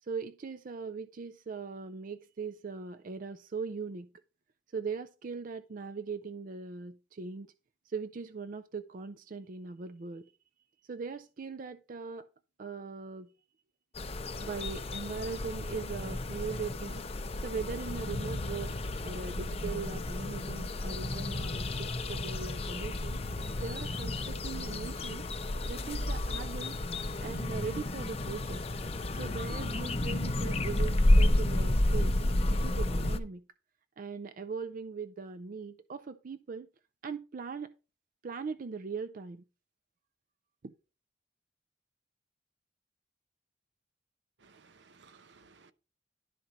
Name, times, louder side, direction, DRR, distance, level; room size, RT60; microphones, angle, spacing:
voice 1, 0.0-4.1 4.7-7.5 7.8-10.3 10.8-12.3 12.6-13.3 14.3-23.2 23.6-25.2 25.6-26.8 27.2-28.7 29.1-32.2 32.5-33.4 34.0-36.7 37.0-37.7 38.2-39.4 40.6-40.7, right 5 dB, 45° right, 0.4 m, -40 dB
sound 1, 13.9-33.2, left 1 dB, 35° left, 0.7 m, -31 dB
voice 2, 44.4-45.7, right 4 dB, 70° right, 0.8 m, -59 dB
11.5 x 4.3 x 5.1 m
head